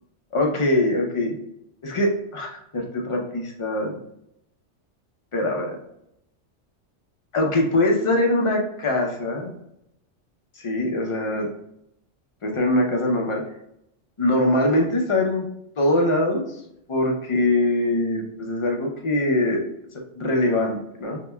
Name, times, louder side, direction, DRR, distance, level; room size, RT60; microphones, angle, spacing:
voice 1, 0.3-1.4 1.8-4.0 5.3-5.8 7.3-9.5 10.6-11.5 12.4-13.4 14.2-15.5 15.8-16.5 16.9-19.6 20.1-21.2, left 1 dB, 40° left, 1 dB, 0.5 m, -22 dB
5.6 x 2.1 x 2.2 m, 0.79 s
omnidirectional pair, 1.2 m